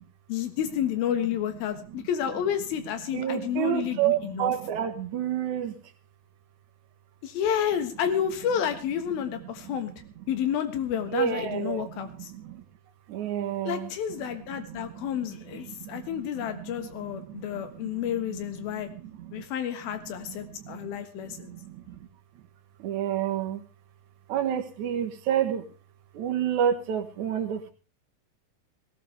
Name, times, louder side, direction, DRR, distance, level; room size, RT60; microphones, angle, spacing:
voice 1, 0.3-4.5 7.2-9.9 10.3-12.3 13.6-18.9 19.3-21.6, left 9 dB, 85° left, 8 dB, 3.3 m, -30 dB
voice 2, 3.1-5.8 11.1-12.6 13.1-13.9 14.7-18.0 18.3-18.4 18.8-19.4 20.3-22.1 22.8-23.6 24.3-25.7 26.1-27.7, right 9 dB, 65° right, 5 dB, 2.4 m, -30 dB
18.0 x 16.5 x 3.3 m, 0.34 s
omnidirectional pair, 4.2 m